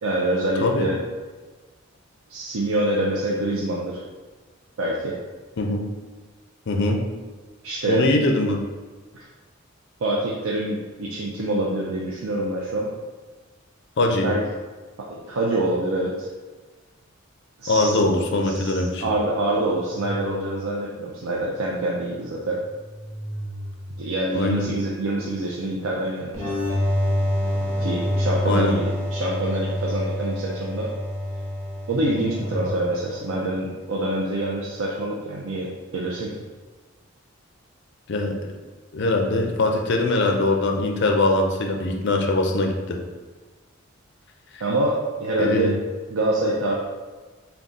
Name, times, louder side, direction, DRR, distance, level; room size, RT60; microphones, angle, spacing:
voice 1, 0.0-1.0 2.3-4.0 4.8-5.2 7.6-8.1 9.1-9.3 10.0-12.9 14.2-14.4 15.1-16.3 17.6-18.1 18.4-22.6 24.0-26.6 27.8-30.9 31.9-36.3 44.6-45.7 46.1-46.8, right 1 dB, 75° right, -3 dB, 0.5 m, -26 dB
voice 2, 6.7-7.0 7.9-8.6 14.0-14.3 17.7-19.0 24.3-24.7 28.4-28.8 38.1-38.4 38.9-43.0 44.5-44.6 45.4-45.7, left 2 dB, 55° left, 3 dB, 0.5 m, -22 dB
sound 1, 19.4-21.0 22.3-24.6 25.3-30.5 31.7-33.4, equal, 50° right, 1.2 m, -38 dB
sound 2, 26.3-33.8, left 1 dB, 10° left, 0.6 m, -27 dB
3.9 x 2.3 x 3.6 m, 1.3 s
head